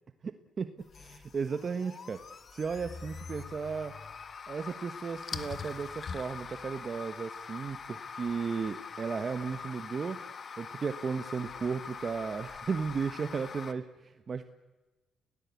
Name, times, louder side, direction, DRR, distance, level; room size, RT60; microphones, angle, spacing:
voice 1, 0.2-2.2 2.5-3.9 4.5-10.2 10.6-14.5, right 5 dB, 40° right, 9 dB, 1.3 m, -35 dB
sound 1, 0.8-13.7, left 5 dB, 45° left, 1.5 m, -43 dB
29.5 x 18.0 x 8.4 m, 1.1 s
cardioid pair, 90°, 0 cm